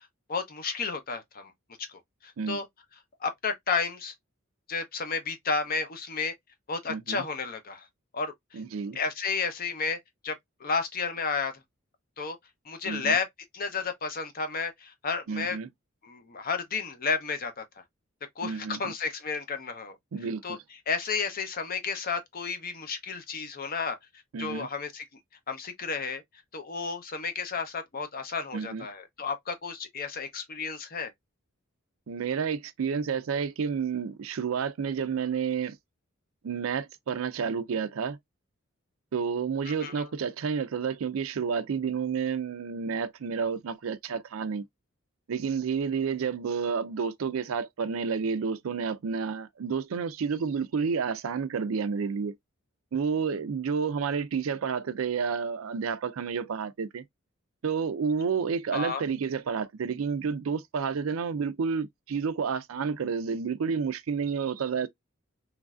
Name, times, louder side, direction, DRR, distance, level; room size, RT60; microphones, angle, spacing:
voice 1, 0.0-1.5 1.9-2.7 3.2-4.1 4.7-6.3 6.7-7.9 8.1-8.6 8.9-10.0 10.2-11.5 12.2-12.4 12.7-13.3 13.5-15.6 16.0-17.6 18.4-20.0 20.4-20.6 20.9-24.0 24.4-25.0 25.5-26.2 26.5-31.1 39.7-40.1 58.7-59.0, left 5 dB, 45° left, 0.7 m, -32 dB
voice 2, 6.9-7.2 8.5-9.0 12.9-13.2 15.3-15.7 18.4-18.9 20.1-20.6 24.3-24.7 28.5-28.8 32.1-35.8 36.4-38.2 39.1-44.6 45.3-52.4 52.9-57.0 57.6-64.9, right 6 dB, 80° right, 0.4 m, -30 dB
3.1 x 2.5 x 2.3 m
head